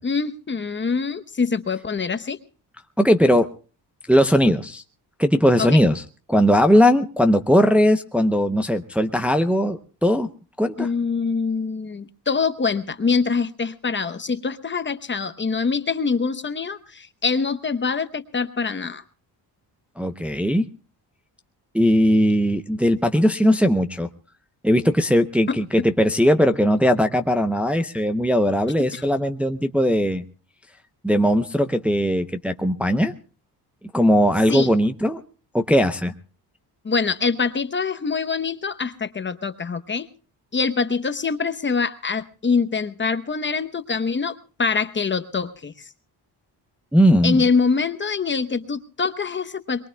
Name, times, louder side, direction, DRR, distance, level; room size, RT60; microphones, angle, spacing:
voice 1, 0.0-2.4 5.6-5.8 10.8-19.0 25.5-25.9 28.9-29.0 34.5-34.7 36.8-40.1 40.5-45.9 47.2-49.9, left 5 dB, 30° left, 10 dB, 0.9 m, -24 dB
voice 2, 3.0-3.5 4.1-4.8 5.2-6.0 6.3-10.3 10.6-10.9 20.0-20.6 21.7-24.1 24.6-30.2 31.0-33.1 33.9-35.2 35.5-36.1 46.9-47.4, equal, 5° right, 6 dB, 0.7 m, -19 dB
22.5 x 22.5 x 2.2 m, 0.36 s
cardioid pair, 110°, 40 cm